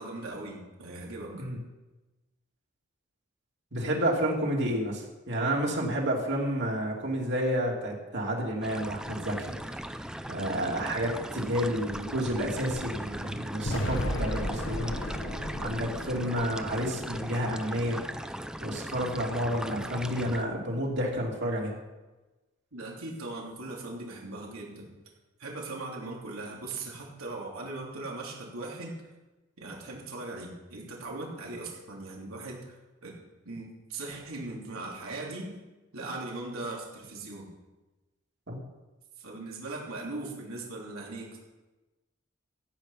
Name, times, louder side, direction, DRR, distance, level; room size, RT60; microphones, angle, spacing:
voice 1, 0.0-1.4 22.7-24.9 25.4-28.9 29.6-32.8 33.0-33.1 33.4-35.6 35.9-37.5 39.2-41.4, right 2 dB, 90° right, -2 dB, 3.5 m, -39 dB
voice 2, 3.7-9.7 10.2-15.1 15.6-18.0 18.6-21.7 38.5-38.6, equal, 55° right, -1 dB, 2.9 m, -30 dB
sound 1, 8.6-20.4, right 1 dB, 5° right, 0.4 m, -38 dB
sound 2, 13.7-17.8, left 1 dB, 65° left, 1.4 m, -35 dB
15.0 x 8.9 x 5.8 m, 1.1 s
head